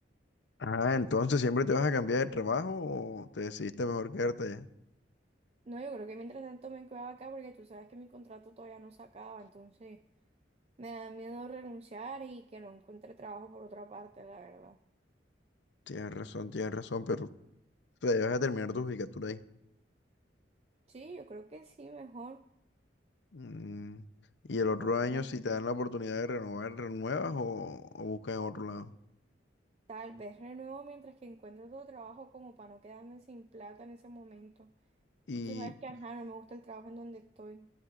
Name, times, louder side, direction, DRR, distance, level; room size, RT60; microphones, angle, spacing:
voice 1, 0.6-4.7 15.9-17.3 18.0-19.4 23.3-24.0 24.5-28.9 35.3-35.7, left 3 dB, 75° left, 0.7 m, -33 dB
voice 2, 5.7-10.0 10.8-14.8 20.9-22.4 24.8-25.3 29.9-34.7 35.4-37.7, right 3 dB, 35° right, 0.4 m, -46 dB
27.5 x 12.5 x 2.5 m
head